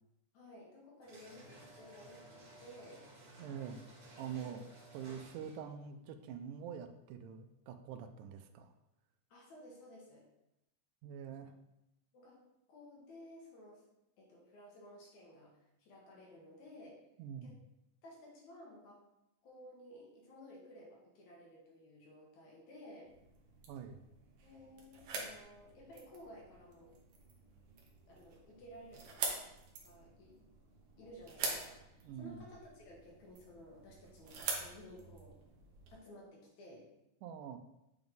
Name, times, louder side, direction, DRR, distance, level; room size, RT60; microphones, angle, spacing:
voice 1, 0.3-3.1 4.2-4.6 9.3-10.3 11.4-11.5 12.1-12.4 12.7-13.9 14.2-15.5 15.8-17.0 17.4-17.6 18.0-19.0 19.4-23.1 24.4-26.9 28.1-29.4 29.8-30.4 31.0-35.4 35.9-36.9, left 1 dB, 70° left, -3 dB, 2.7 m, -55 dB
sound 1, 1.0-5.8, right 1 dB, 35° right, 2.3 m, -56 dB
voice 2, 3.4-3.9 4.2-4.6 4.9-8.7 11.0-11.5 17.2-17.6 23.7-24.0 32.0-32.5 37.2-37.6, right 8 dB, 85° right, 8 dB, 2.0 m, -45 dB
sound 2, 23.0-35.9, right 4 dB, 65° right, 1.5 m, -46 dB
7.8 x 3.6 x 3.8 m, 0.87 s
omnidirectional pair, 3.6 m